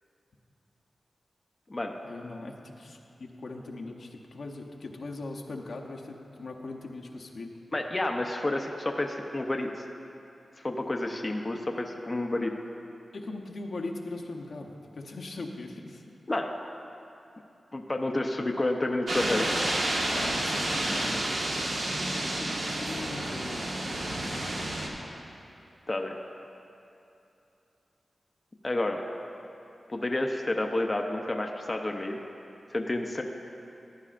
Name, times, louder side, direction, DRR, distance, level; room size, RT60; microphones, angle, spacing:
voice 1, 2.0-7.6 13.1-16.0 20.1-21.3 22.0-24.9, left 2 dB, 70° left, 1 dB, 0.8 m, -40 dB
voice 2, 7.7-9.7 10.6-12.5 16.3-16.5 17.7-19.5 25.9-26.2 28.6-29.0 29.9-32.2 32.7-33.2, left 2 dB, 30° left, 2 dB, 0.6 m, -30 dB
sound 1, 19.1-24.9, right 1 dB, 70° right, 1.2 m, -30 dB
14.0 x 11.0 x 2.5 m, 2.8 s
wide cardioid pair, 80°, 0 cm